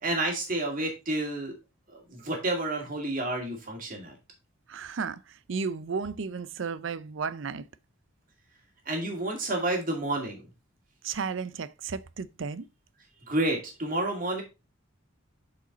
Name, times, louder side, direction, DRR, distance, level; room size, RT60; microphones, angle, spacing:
voice 1, 0.0-1.6 1.9-4.1 8.9-10.4 13.3-14.4, right 2 dB, 40° right, 2.2 m, -30 dB
voice 2, 4.7-5.2 5.5-7.6 11.0-12.7, right 5 dB, 65° right, 0.5 m, -33 dB
7.2 x 5.0 x 3.9 m
head